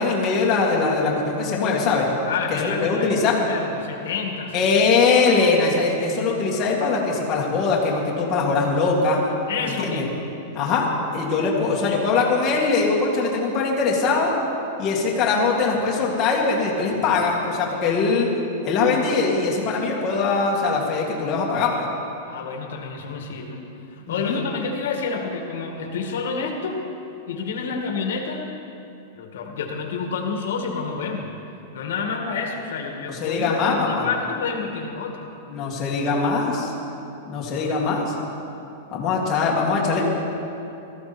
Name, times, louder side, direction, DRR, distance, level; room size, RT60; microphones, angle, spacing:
voice 1, 0.0-2.1 2.5-3.4 4.5-9.2 9.6-10.1 10.5-14.3 14.8-18.3 18.6-21.9 24.1-24.4 33.1-34.0 35.5-36.7 37.3-38.1 38.9-40.0, left 4 dB, 25° left, -4 dB, 2.2 m, -22 dB
voice 2, 2.3-4.6 9.5-10.2 22.3-23.6 23.9-26.8 27.3-28.4 29.2-31.3 31.7-35.3, left 5 dB, 80° left, 2 dB, 2.0 m, -29 dB
18.0 x 14.0 x 4.4 m, 2.8 s
supercardioid pair, 170°, 0 cm